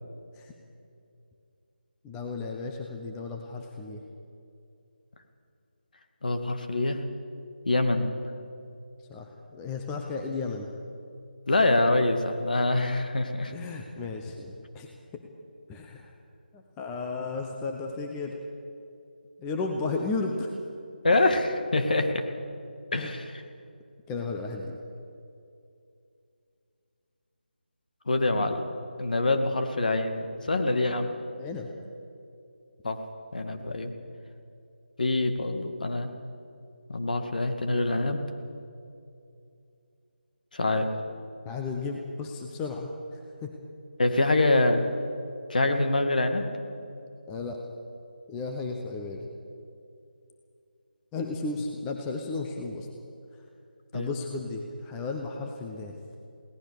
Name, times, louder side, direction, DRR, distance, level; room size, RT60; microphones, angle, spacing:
voice 1, 2.0-4.0 9.1-10.7 13.5-15.2 15.7-16.1 16.5-18.4 19.4-20.5 21.1-21.2 22.9-23.2 24.1-24.8 31.4-31.7 41.4-43.5 47.3-47.6 48.3-49.3 51.1-52.9 53.9-56.0, left 3 dB, 10° left, 2 dB, 0.9 m, -34 dB
voice 2, 6.2-7.0 7.7-8.1 11.5-13.5 21.0-22.2 22.9-23.2 28.1-28.6 29.0-31.1 32.8-33.0 33.3-33.9 35.0-36.1 36.9-38.2 40.5-40.9 44.0-44.8 45.5-46.4 53.9-54.1, left 2 dB, 55° left, 6 dB, 2.1 m, -25 dB
22.0 x 18.0 x 6.7 m, 2.6 s
figure-of-eight pair, 160°, 6 cm